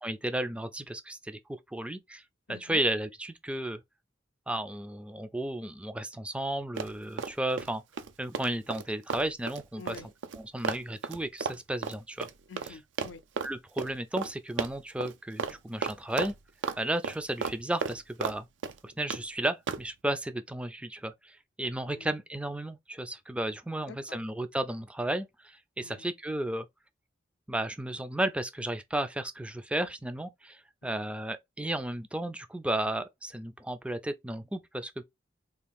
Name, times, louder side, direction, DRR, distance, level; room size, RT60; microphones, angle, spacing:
voice 1, 0.0-1.4 1.7-2.2 2.5-3.8 4.5-7.8 8.2-10.0 10.5-12.3 13.4-16.3 16.8-18.5 18.8-26.7 27.5-35.0, right 1 dB, 5° right, 0.3 m, -33 dB
voice 2, 2.5-2.8 9.8-10.1 12.5-13.2 21.9-22.1 23.8-24.2 25.8-26.1 30.8-31.1, left 4 dB, 75° left, 0.5 m, -48 dB
Run, 6.8-7.7 8.0-12.7 13.0-13.5 13.8-13.9 14.2-14.3 14.6-15.1 15.4-15.6 15.8-16.8 17.0-18.4 18.6-19.2 19.7-19.9, right 5 dB, 80° right, 0.4 m, -34 dB
3.4 x 2.4 x 3.4 m
head